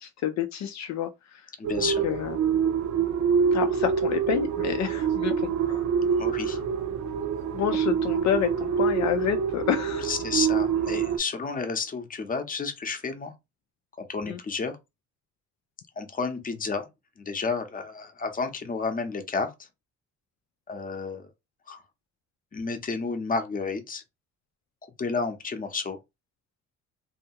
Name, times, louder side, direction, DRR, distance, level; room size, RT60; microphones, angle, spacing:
voice 1, 0.0-1.4 1.8-2.4 3.5-5.8 6.3-6.6 7.5-10.1 14.3-14.4, left 10 dB, 65° left, 0.5 m, -29 dB
voice 2, 1.6-2.0 6.2-6.6 10.0-13.3 14.0-14.8 16.0-16.9 17.2-19.5 20.7-21.3 21.7-21.8 22.5-24.0 25.0-26.0, left 4 dB, 30° left, 0.7 m, -31 dB
sound 1, 1.6-11.2, right 6 dB, 65° right, 0.7 m, -26 dB
2.8 x 2.3 x 2.8 m
cardioid pair, 90°, 30 cm